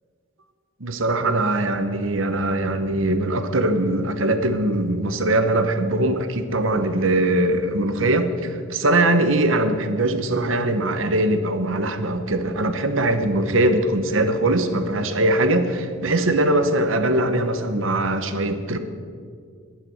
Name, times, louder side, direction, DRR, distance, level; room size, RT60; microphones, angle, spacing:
voice 1, 0.8-18.8, right 1 dB, 65° right, 9 dB, 1.0 m, -21 dB
11.0 x 10.0 x 8.0 m, 2.1 s
head